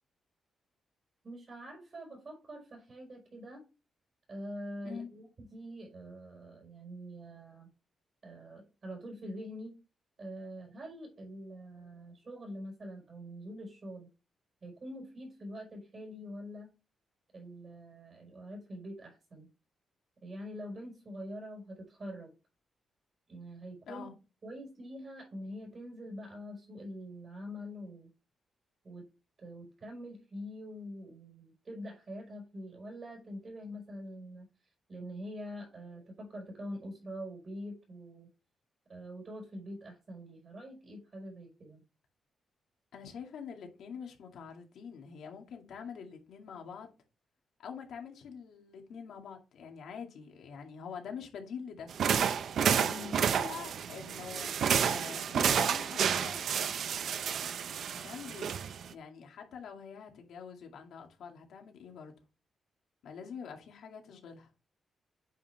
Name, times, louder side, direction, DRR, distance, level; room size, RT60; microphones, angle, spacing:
voice 1, 1.2-3.6 4.3-7.7 8.2-9.8 10.2-14.1 14.6-16.7 17.3-19.5 20.2-22.3 23.3-24.1 24.4-28.1 28.8-29.1 29.4-34.5 34.9-38.3 38.9-41.8 52.8-53.2, equal, 40° right, 4.6 m, -45 dB
voice 2, 42.9-46.9 47.6-51.9 52.7-54.5 54.9-56.5 57.9-58.5 58.9-62.1 63.0-64.5, left 6 dB, 85° left, 2.2 m, -45 dB
sound 1, 51.9-58.9, right 7 dB, 70° right, 0.6 m, -30 dB
9.1 x 5.7 x 3.4 m
cardioid pair, 120°, 0 cm